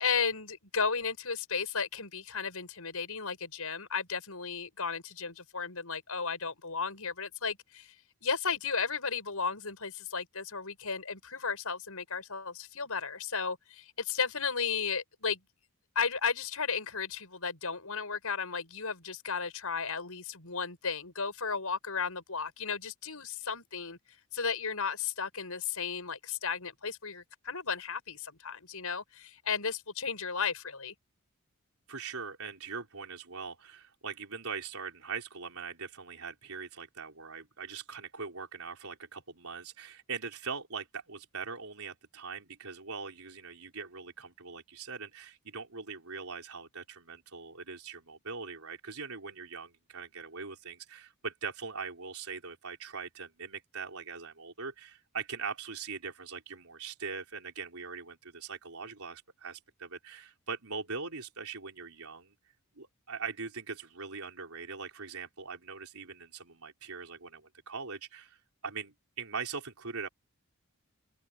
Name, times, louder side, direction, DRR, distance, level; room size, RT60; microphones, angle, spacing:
voice 1, 0.0-7.9 8.2-15.4 15.9-24.0 24.3-30.9, left 5 dB, 70° left, 7.6 m, -34 dB
voice 2, 31.9-62.3 62.8-70.1, right 5 dB, 70° right, 4.5 m, -41 dB
head